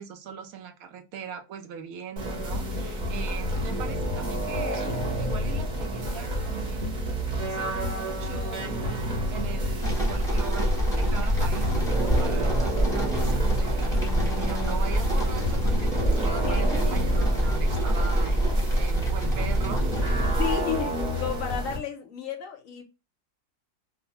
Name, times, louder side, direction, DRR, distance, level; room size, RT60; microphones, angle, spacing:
voice 1, 0.0-7.2 7.5-9.0 9.3-18.4 18.7-19.9 20.5-20.9, right 7 dB, 75° right, 1.0 m, -40 dB
sound 1, 2.2-21.8, equal, 40° right, 0.8 m, -29 dB
sound 2, 9.8-20.6, right 1 dB, 5° left, 0.7 m, -26 dB
voice 2, 12.0-12.4 16.4-16.9 17.8-18.1 20.4-22.8, left 8 dB, 65° left, 0.9 m, -34 dB
2.8 x 2.0 x 2.8 m
omnidirectional pair, 1.6 m